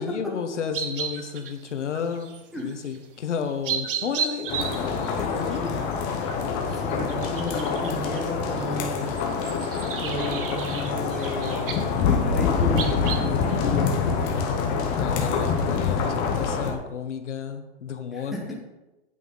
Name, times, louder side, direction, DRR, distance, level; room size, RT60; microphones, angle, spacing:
voice 1, 0.0-5.8 15.0-18.5, left 7 dB, 85° left, 7 dB, 1.3 m, -32 dB
sound 1, 0.7-3.0 3.4-13.8, right 7 dB, 50° right, 1.1 m, -35 dB
sound 2, 4.5-16.7, left 5 dB, 25° left, 1.1 m, -26 dB
voice 2, 5.2-6.0 6.6-9.1 10.0-14.7 18.1-18.2, left 1 dB, ahead, -3 dB, 1.5 m, -34 dB
9.2 x 8.3 x 4.0 m, 1.0 s
hypercardioid pair, 155°, 34 cm